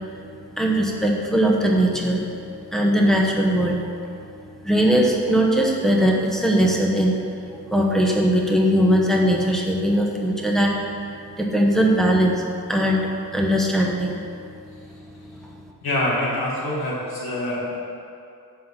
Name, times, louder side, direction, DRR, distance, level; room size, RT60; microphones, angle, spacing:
voice 1, 0.5-2.3 2.7-3.9 4.6-7.2 7.7-10.7 11.4-14.2 15.4-15.5, equal, ahead, -1 dB, 1.0 m, -20 dB
voice 2, 15.8-17.8, left 1 dB, 85° left, -5 dB, 2.4 m, -25 dB
7.5 x 5.7 x 7.4 m, 2.5 s
wide cardioid pair, 160°, 36 cm